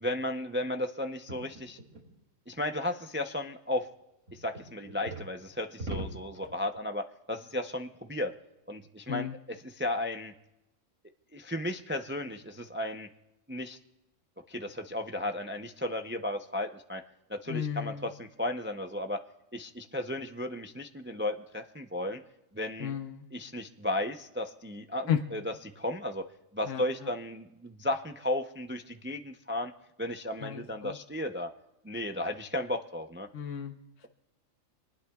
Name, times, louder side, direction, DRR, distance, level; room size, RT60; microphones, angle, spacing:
voice 1, 0.0-1.8 2.5-3.9 4.3-8.3 8.7-9.3 9.6-10.3 11.3-13.1 13.5-13.8 14.5-17.0 17.3-19.2 19.5-22.2 22.5-22.9 23.3-26.3 26.5-29.7 30.0-31.5 31.8-33.3, left 1 dB, 15° right, 5 dB, 0.4 m, -34 dB
sound 1, 1.3-2.1 4.3-5.3 5.8-6.8, right 1 dB, 70° right, 2.9 m, -40 dB
voice 2, 17.5-18.1 22.8-23.3 25.1-25.2 26.6-27.1 30.4-31.0 33.3-33.8, left 9 dB, 70° left, 5 dB, 1.2 m, -33 dB
26.5 x 19.5 x 2.4 m, 0.93 s
omnidirectional pair, 1.3 m